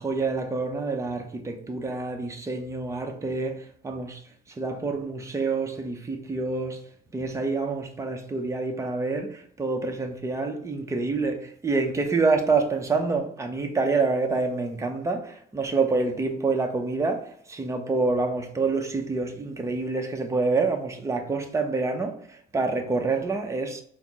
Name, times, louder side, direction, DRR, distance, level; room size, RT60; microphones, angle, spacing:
voice 1, 0.0-4.2 4.5-6.8 7.1-23.8, right 3 dB, 15° right, 0.6 m, -27 dB
4.2 x 2.0 x 3.5 m
cardioid pair, 110°, 17 cm